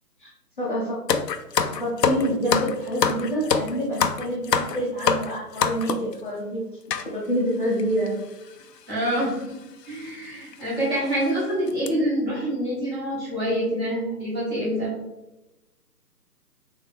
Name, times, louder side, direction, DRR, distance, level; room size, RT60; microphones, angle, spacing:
voice 1, 0.6-1.0 1.7-6.7 7.1-8.2, equal, 30° left, -6 dB, 0.8 m, -27 dB
sound 1, 1.1-6.1 6.9-7.1 7.8-7.9 8.1-8.3 9.2-9.4 9.9-10.0 10.5-10.6 11.1-11.3 11.7-11.9, left 6 dB, 75° left, 0.6 m, -25 dB
voice 2, 8.9-9.6 9.9-14.9, equal, 15° right, -9 dB, 1.5 m, -26 dB
3.5 x 3.5 x 3.4 m, 0.97 s
figure-of-eight pair, 150°, 49 cm